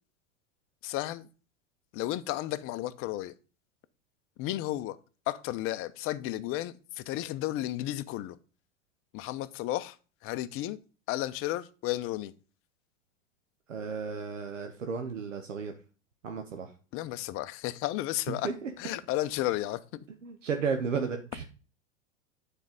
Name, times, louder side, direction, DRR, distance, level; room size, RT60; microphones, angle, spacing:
voice 1, 0.8-1.3 1.9-3.3 4.4-5.0 5.3-8.4 9.1-10.0 10.2-10.8 11.1-12.3 16.9-18.5 18.8-20.0, left 15 dB, 35° left, 0.7 m, -33 dB
voice 2, 13.7-15.7 16.2-16.7 18.3-18.7 20.2-21.5, right 5 dB, 80° right, 1.1 m, -33 dB
9.4 x 4.5 x 5.1 m
figure-of-eight pair, 90°, 38 cm